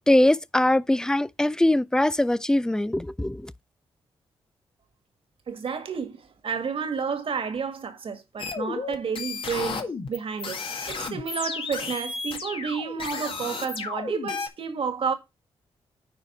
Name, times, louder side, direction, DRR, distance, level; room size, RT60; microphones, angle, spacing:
voice 1, 0.1-3.5, left 1 dB, 5° left, 0.5 m, -22 dB
voice 2, 5.5-10.6 10.9-15.1, right 6 dB, 60° right, 1.8 m, -31 dB
sound 1, 8.4-14.5, left 4 dB, 55° left, 1.9 m, -33 dB
9.2 x 4.8 x 4.4 m
cardioid pair, 70°, 10 cm